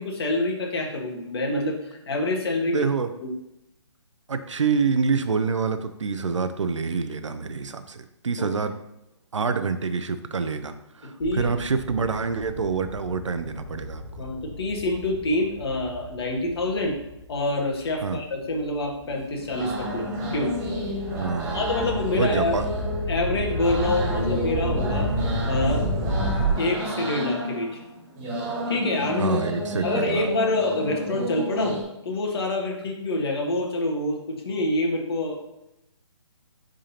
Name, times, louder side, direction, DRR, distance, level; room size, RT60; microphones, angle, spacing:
voice 1, 0.0-2.8 3.2-3.3 8.4-8.5 11.0-11.5 14.1-16.9 17.3-20.0 20.3-20.5 21.5-22.6 23.1-25.1 25.4-25.8 26.6-27.7 28.7-29.4 29.8-31.8 32.0-35.4, left 2 dB, 55° left, 0 dB, 1.5 m, -26 dB
voice 2, 2.6-3.1 4.3-8.7 9.3-14.3 18.0-18.2 21.2-21.7 22.2-22.7 29.2-30.3, right 5 dB, 80° right, 9 dB, 0.6 m, -27 dB
sound 1, 11.2-17.9 18.5-26.5, equal, 5° right, 2.4 m, -31 dB
sound 2, 19.0-31.8, equal, 20° right, 1.8 m, -31 dB
9.0 x 3.7 x 2.9 m, 0.86 s
figure-of-eight pair, 145°, 15 cm